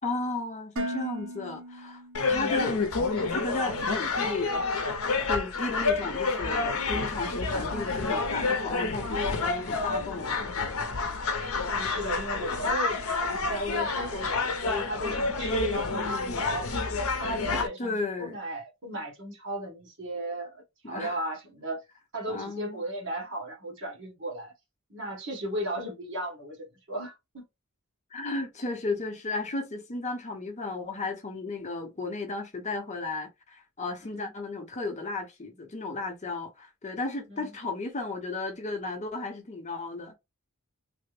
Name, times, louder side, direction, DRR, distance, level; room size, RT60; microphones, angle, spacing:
voice 1, 0.0-2.0 2.3-2.8 3.3-4.5 5.3-10.8 15.9-16.5 17.8-18.4 20.8-21.2 22.3-22.8 28.1-40.1, left 3 dB, 30° left, 0.7 m, -34 dB
Dishes pots and pans, 0.8-2.8, right 1 dB, 75° right, 1.0 m, -37 dB
sound 1, 2.1-17.7, left 3 dB, 75° left, 0.6 m, -29 dB
voice 2, 2.3-2.6 11.7-16.8 17.2-21.8 22.1-24.5 24.9-27.4 34.0-34.3 37.3-37.5, right 1 dB, 55° right, 1.6 m, -36 dB
3.3 x 2.0 x 3.2 m
head